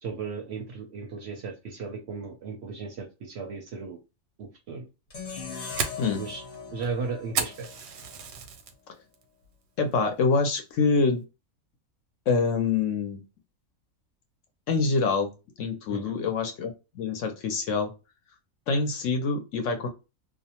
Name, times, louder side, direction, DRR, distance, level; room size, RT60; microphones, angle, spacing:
voice 1, 0.0-4.0 4.4-4.9 6.1-6.4 6.7-7.7 15.9-16.1, right 4 dB, 65° right, 3 dB, 0.7 m, -36 dB
sound 1, 5.1-8.3, left 5 dB, 35° left, 0.8 m, -40 dB
Fire, 5.2-8.7 9.1-9.5 9.9-10.0 10.6-10.9, right 6 dB, 85° right, 1.1 m, -33 dB
voice 2, 9.8-11.2 12.3-13.2 14.7-15.3 15.6-17.9 18.7-19.9, left 4 dB, 70° left, 5 dB, 0.9 m, -25 dB
2.5 x 2.0 x 2.8 m, 0.28 s
omnidirectional pair, 1.5 m